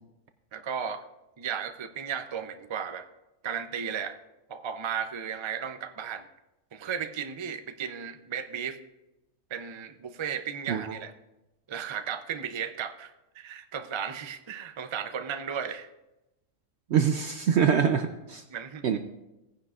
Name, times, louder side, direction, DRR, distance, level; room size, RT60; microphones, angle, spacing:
voice 1, 0.5-1.0 1.4-3.1 3.4-4.2 4.5-6.2 6.7-8.8 9.5-11.1 11.7-15.9 18.5-19.0, right 7 dB, 50° right, 9 dB, 0.3 m, -35 dB
voice 2, 16.9-18.4 18.8-19.0, right 7 dB, 65° right, 7 dB, 0.8 m, -24 dB
18.0 x 10.0 x 2.4 m, 0.95 s
omnidirectional pair, 1.4 m